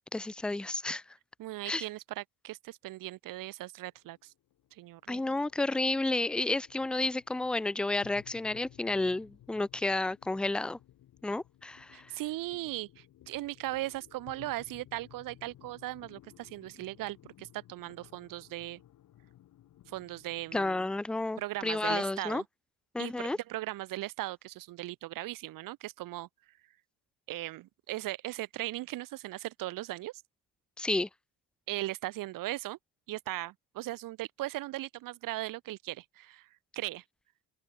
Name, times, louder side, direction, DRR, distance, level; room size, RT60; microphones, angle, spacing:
voice 1, 0.1-1.0 1.7-1.8 5.1-10.8 11.2-12.1 20.5-22.4 22.9-23.4 30.8-31.1, left 2 dB, 5° left, 0.4 m, -31 dB
voice 2, 1.4-4.3 4.7-5.2 11.9-18.8 19.9-20.9 21.4-22.4 23.0-26.3 27.3-30.1 31.7-32.8 33.1-36.5 36.7-37.0, right 17 dB, 65° right, 1.0 m, -38 dB
sound 1, 3.9-20.7, left 13 dB, 60° left, 5.2 m, -58 dB
open air
cardioid pair, 145°, 35 cm